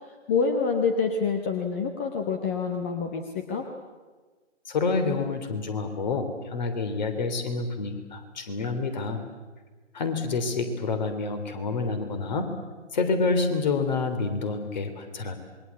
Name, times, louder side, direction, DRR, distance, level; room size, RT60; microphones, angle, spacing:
voice 1, 0.3-3.7, left 5 dB, 10° left, 4 dB, 0.7 m, -27 dB
voice 2, 4.7-9.2 9.9-12.5 12.9-15.4, left 4 dB, 35° left, 8 dB, 3.4 m, -28 dB
27.0 x 21.5 x 8.4 m, 1.3 s
figure-of-eight pair, 150°, 36 cm